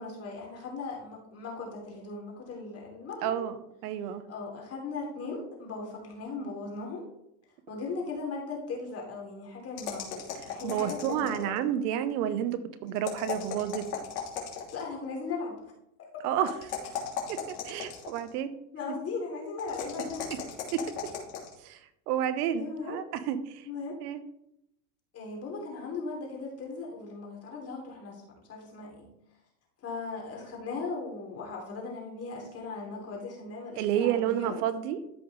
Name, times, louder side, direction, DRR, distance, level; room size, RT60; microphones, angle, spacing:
voice 1, 0.0-3.4 4.3-7.0 7.7-11.6 14.7-15.6 16.0-16.1 18.7-20.3 22.6-23.0 23.6-23.9 25.1-29.1 29.8-34.6, left 4 dB, 30° left, -1 dB, 3.2 m, -38 dB
voice 2, 3.2-3.6 3.8-4.3 10.6-13.8 16.2-16.5 17.3-17.4 17.6-18.5 20.7-20.8 21.6-21.8 22.1-23.7 24.0-24.2 33.8-35.0, right 10 dB, 70° right, 12 dB, 1.1 m, -30 dB
sound 1, 9.8-11.6 13.0-14.9 16.4-18.3 19.6-21.5, left 8 dB, 80° left, 3.0 m, -37 dB
13.5 x 5.2 x 3.2 m, 0.81 s
supercardioid pair, 120°, 48 cm